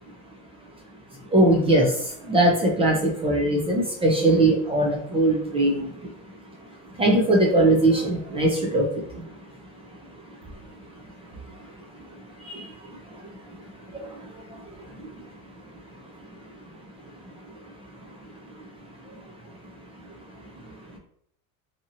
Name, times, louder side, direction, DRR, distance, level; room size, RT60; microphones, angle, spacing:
voice 1, 1.3-6.1 7.0-9.3 11.5-11.7 12.4-13.3 13.6-13.7 13.9-15.3 16.2-16.3 18.5-18.7 19.0-19.2 20.4-20.5, right 1 dB, 15° right, -1 dB, 0.3 m, -22 dB
2.7 x 2.7 x 2.5 m, 0.65 s
supercardioid pair, 110°, 45 cm